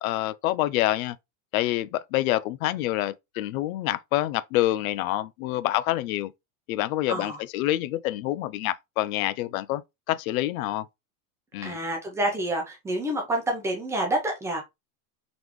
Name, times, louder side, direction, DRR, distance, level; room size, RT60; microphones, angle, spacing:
voice 1, 0.0-1.2 1.5-6.3 6.7-9.8 10.1-10.9 11.5-11.8, left 15 dB, 80° left, 0.6 m, -27 dB
voice 2, 7.1-7.4 11.6-14.6, right 1 dB, 5° right, 0.6 m, -28 dB
4.0 x 3.5 x 3.0 m
supercardioid pair, 180°, 41 cm